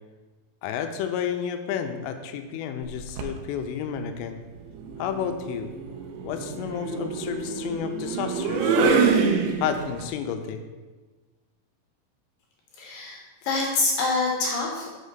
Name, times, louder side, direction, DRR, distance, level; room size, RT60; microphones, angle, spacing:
voice 1, 0.6-4.4 5.0-5.7 6.2-9.1 9.6-10.6, left 8 dB, 85° left, 7 dB, 3.2 m, -31 dB
sound 1, 2.8-3.4 4.8-10.0, right 5 dB, 85° right, 2.4 m, -26 dB
voice 2, 12.7-14.9, left 3 dB, 70° left, -1 dB, 2.8 m, -26 dB
7.2 x 5.5 x 6.7 m, 1.3 s
omnidirectional pair, 5.9 m